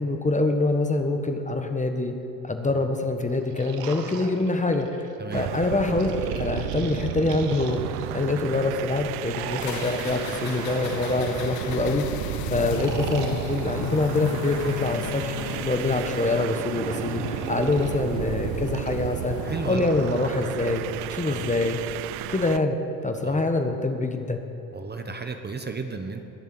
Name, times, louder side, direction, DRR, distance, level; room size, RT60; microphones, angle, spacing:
voice 1, 0.0-2.1 2.4-7.8 8.1-12.0 12.5-15.3 15.6-19.4 19.7-20.8 21.1-21.8 22.3-22.8 23.0-24.4, left 2 dB, 15° left, 6 dB, 1.4 m, -25 dB
sound 1, 3.3-5.1 6.0-8.3 9.2-11.7 12.5-14.2 15.1-17.9 18.6-20.3, right 5 dB, 85° right, 1.3 m, -39 dB
voice 2, 5.2-5.5 19.4-19.9 21.2-21.5 23.2-23.4 24.7-26.2, right 4 dB, 20° right, 6 dB, 1.3 m, -34 dB
sound 2, 5.3-22.7, right 17 dB, 60° right, 0.5 m, -33 dB
sound 3, 9.6-19.8, left 13 dB, 50° left, 0.7 m, -37 dB
21.0 x 7.3 x 7.8 m, 2.8 s
hypercardioid pair, 70°, 46 cm